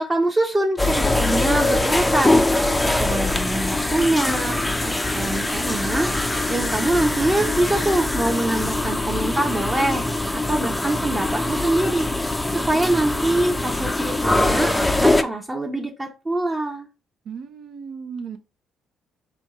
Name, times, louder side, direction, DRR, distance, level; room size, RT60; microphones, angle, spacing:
voice 1, 0.0-6.1 6.5-10.1 10.3-12.1 12.5-16.9, right 1 dB, 25° right, 0.8 m, -24 dB
sound 1, 0.8-15.2, left 2 dB, 10° left, 0.5 m, -22 dB
voice 2, 17.2-18.4, right 6 dB, 70° right, 0.6 m, -35 dB
4.4 x 2.3 x 4.1 m
supercardioid pair, 65°, 0 cm